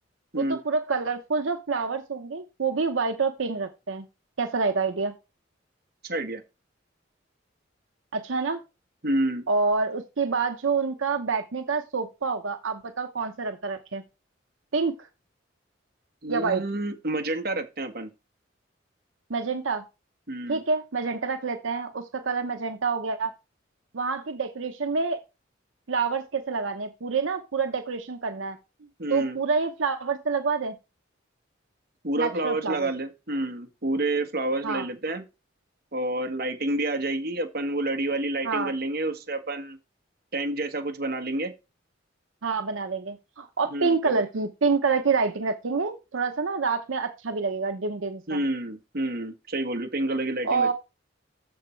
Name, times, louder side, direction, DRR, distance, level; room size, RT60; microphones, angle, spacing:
voice 1, 0.3-4.0 4.4-5.1 8.1-8.6 9.5-14.0 14.7-14.9 16.3-16.6 19.3-19.8 20.5-23.3 23.9-25.2 25.9-28.6 29.1-30.8 32.2-32.9 34.6-34.8 38.4-38.7 42.4-48.4 50.4-50.7, right 4 dB, 90° right, 0.8 m, -27 dB
voice 2, 6.0-6.4 9.0-9.4 16.2-18.1 20.3-20.6 29.0-29.4 32.0-35.2 35.9-39.8 40.3-41.5 43.7-44.2 48.3-50.7, right 1 dB, 55° right, 1.6 m, -29 dB
7.0 x 6.5 x 4.5 m
head